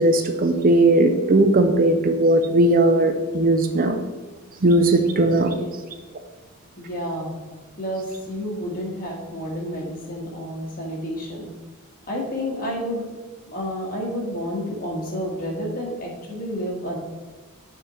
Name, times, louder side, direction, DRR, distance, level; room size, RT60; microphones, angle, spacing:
voice 1, 0.0-4.0 4.6-5.5, right 2 dB, 40° right, 7 dB, 0.4 m, -18 dB
voice 2, 6.8-7.4 7.8-11.5 12.1-13.1 13.5-17.0, equal, 40° left, -2 dB, 1.6 m, -30 dB
7.0 x 4.8 x 4.3 m, 1.3 s
head